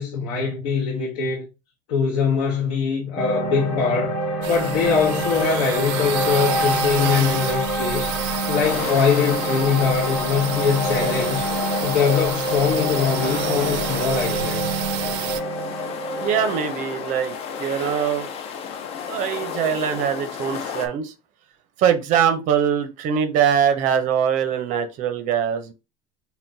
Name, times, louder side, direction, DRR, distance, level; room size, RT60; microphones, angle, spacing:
voice 1, 0.0-1.5 1.9-4.2 4.5-8.1 8.5-11.5 11.8-14.7, left 6 dB, 60° left, 0.9 m, -22 dB
sound 1, 3.2-19.4, equal, 10° left, 1.1 m, -27 dB
sound 2, 4.4-15.4, right 12 dB, 85° right, 0.5 m, -30 dB
sound 3, 8.6-20.9, left 7 dB, 30° left, 0.4 m, -32 dB
voice 2, 16.2-18.3 19.1-21.1 21.8-25.7, right 8 dB, 40° right, 0.6 m, -22 dB
5.7 x 2.2 x 2.6 m
cardioid pair, 180°, 21 cm